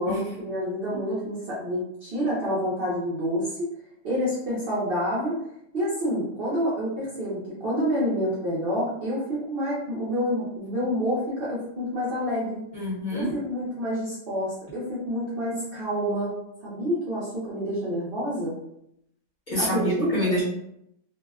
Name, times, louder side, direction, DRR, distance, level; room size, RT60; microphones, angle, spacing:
voice 1, 0.0-3.6 4.0-5.3 5.7-12.6 13.1-16.3 16.6-18.6 19.6-20.4, equal, 55° right, -7 dB, 0.8 m, -28 dB
voice 2, 12.7-13.4 19.5-20.4, equal, 40° left, -9 dB, 0.8 m, -27 dB
2.6 x 2.1 x 2.3 m, 0.77 s
omnidirectional pair, 1.5 m